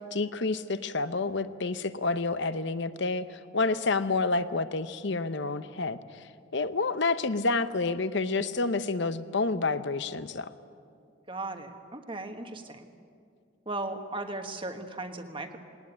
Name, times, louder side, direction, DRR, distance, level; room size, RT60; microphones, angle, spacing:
voice 1, 0.0-6.2 6.5-10.5, left 3 dB, 60° left, 12 dB, 0.8 m, -29 dB
voice 2, 11.3-12.9 13.6-15.6, right 2 dB, 25° right, 6 dB, 1.4 m, -37 dB
21.0 x 19.0 x 9.6 m, 2.3 s
head